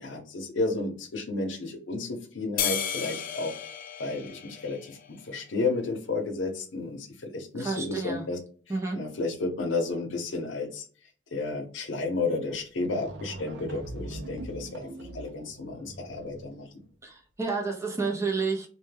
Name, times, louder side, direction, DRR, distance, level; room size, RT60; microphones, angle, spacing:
voice 1, 0.0-3.6 4.0-8.4 8.9-10.8 11.3-14.9 15.1-16.7, left 3 dB, 85° left, 5 dB, 0.6 m, -32 dB
sound 1, 2.6-5.2, left 8 dB, 50° left, 0.3 m, -33 dB
voice 2, 7.6-8.2 8.7-9.0 17.0-18.7, right 4 dB, 15° right, 0 dB, 0.5 m, -30 dB
sound 2, 12.5-12.6 12.8-16.6, right 1 dB, 70° right, 0.5 m, -41 dB
2.2 x 2.1 x 3.2 m, 0.41 s
head